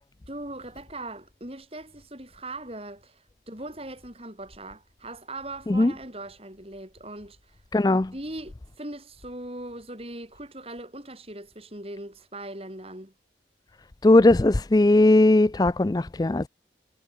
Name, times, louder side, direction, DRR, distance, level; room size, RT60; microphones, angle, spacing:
voice 1, 0.3-7.6 8.1-13.1, right 1 dB, 30° right, 6.3 m, -40 dB
voice 2, 7.7-8.1 14.0-16.5, left 2 dB, 20° left, 0.4 m, -18 dB
head